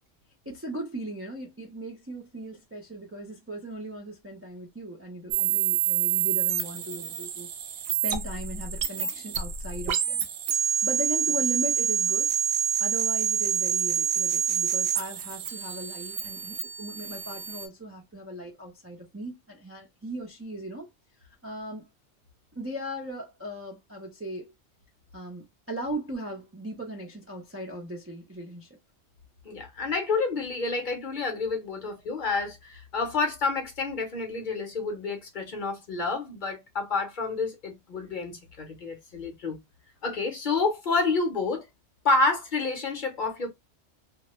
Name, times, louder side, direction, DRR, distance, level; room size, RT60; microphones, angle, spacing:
voice 1, 0.5-7.5 8.0-10.3 10.8-12.3 12.8-20.9 21.4-21.9 22.5-24.5 25.1-28.7, right 1 dB, 25° right, 0.3 m, -38 dB
sound 1, 5.3-17.7, right 9 dB, 70° right, 0.8 m, -27 dB
voice 2, 29.4-39.6 40.0-41.7 42.0-43.5, left 3 dB, 50° left, 0.8 m, -29 dB
2.2 x 2.1 x 2.9 m
omnidirectional pair, 1.2 m